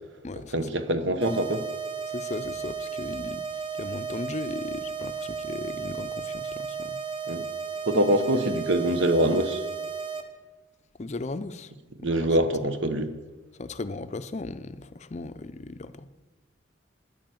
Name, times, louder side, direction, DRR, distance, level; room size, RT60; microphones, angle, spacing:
voice 1, 0.5-1.7 7.3-7.5 7.9-9.6 12.0-13.1, right 1 dB, 65° right, 1.0 m, -24 dB
sound 1, 1.2-10.2, right 5 dB, 25° right, 1.0 m, -34 dB
voice 2, 2.1-3.4 3.8-7.0 11.0-11.7 12.0-12.3 13.6-16.1, left 2 dB, 35° left, 0.5 m, -36 dB
10.0 x 8.9 x 7.7 m
head